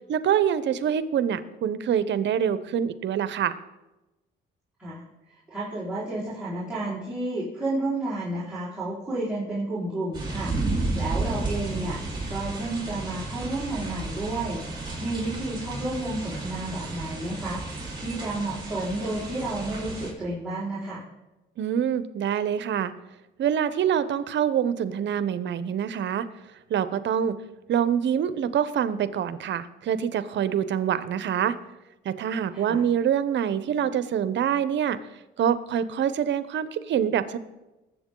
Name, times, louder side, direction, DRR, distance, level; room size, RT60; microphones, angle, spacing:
voice 1, 0.1-3.5 21.6-22.9 23.4-26.3 26.7-27.4 27.7-31.6 32.0-35.0 35.4-37.4, right 9 dB, 65° right, 14 dB, 0.8 m, -25 dB
voice 2, 5.3-10.6 11.0-12.0 12.3-14.6 15.0-17.6 18.0-21.0 32.5-32.8, right 2 dB, 5° right, -11 dB, 4.5 m, -31 dB
sound 1, 10.1-20.1, right 2 dB, 20° right, 4.7 m, -32 dB
20.0 x 7.9 x 3.8 m, 1.0 s
cardioid pair, 90°, 20 cm